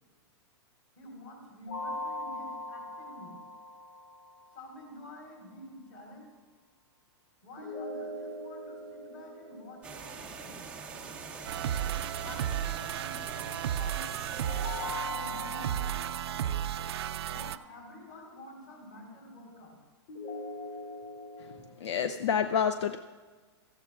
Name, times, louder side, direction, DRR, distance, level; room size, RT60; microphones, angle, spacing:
voice 1, 1.0-3.4 4.5-6.3 7.4-10.6 12.2-15.7 17.3-19.8 20.7-20.8, left 1 dB, 30° left, 0 dB, 4.1 m, -49 dB
sound 1, 1.7-4.6 7.6-10.6 14.3-17.5 20.1-21.6, left 1 dB, 50° left, 4.4 m, -41 dB
sound 2, 9.8-15.0, right 5 dB, 5° right, 0.6 m, -44 dB
sound 3, 11.4-17.6, right 10 dB, 60° right, 0.5 m, -34 dB
voice 2, 21.8-23.0, left 7 dB, 75° left, 9 dB, 0.7 m, -28 dB
16.5 x 14.5 x 2.4 m, 1.4 s
supercardioid pair, 170°, 15 cm